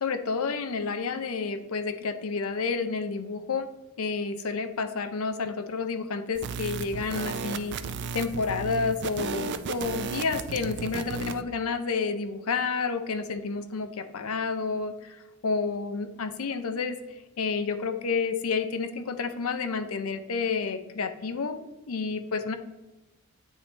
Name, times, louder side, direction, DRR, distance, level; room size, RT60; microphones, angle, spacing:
voice 1, 0.0-3.7 4.0-7.8 8.1-22.6, left 4 dB, 70° left, 9 dB, 0.6 m, -30 dB
sound 1, 6.3-11.4, right 5 dB, 50° right, 0.4 m, -34 dB
9.1 x 3.3 x 4.0 m, 1.1 s
head